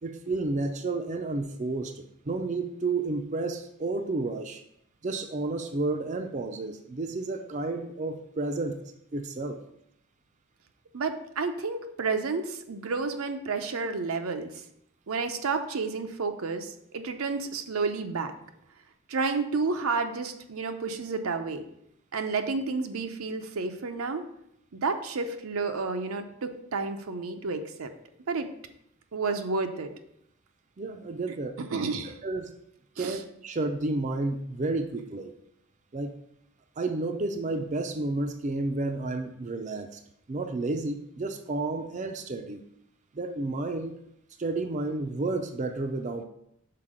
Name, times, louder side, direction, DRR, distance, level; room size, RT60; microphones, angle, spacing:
voice 1, 0.0-4.6 5.0-8.8 9.1-9.6 30.8-31.5 32.0-32.5 33.0-35.3 35.9-36.1 36.8-40.0 40.3-42.6 43.1-43.9 44.4-46.2, right 2 dB, 35° right, 6 dB, 0.4 m, -31 dB
voice 2, 10.9-14.5 15.1-18.3 19.1-21.6 22.1-24.2 24.7-27.9 28.3-28.5 29.1-29.9 31.6-32.1 33.0-33.2, right 4 dB, 85° right, 6 dB, 0.6 m, -30 dB
5.8 x 4.4 x 4.9 m, 0.75 s
head